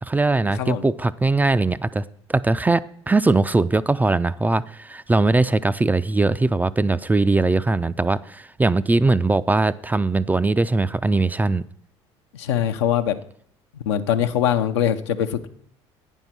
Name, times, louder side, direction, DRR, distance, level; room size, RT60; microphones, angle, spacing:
voice 1, 0.0-2.0 2.3-11.6, right 3 dB, 10° right, 15 dB, 0.3 m, -20 dB
voice 2, 12.3-13.2 13.9-15.5, left 10 dB, 80° left, 7 dB, 0.6 m, -22 dB
9.2 x 5.4 x 6.0 m, 0.65 s
hypercardioid pair, 65°, 14 cm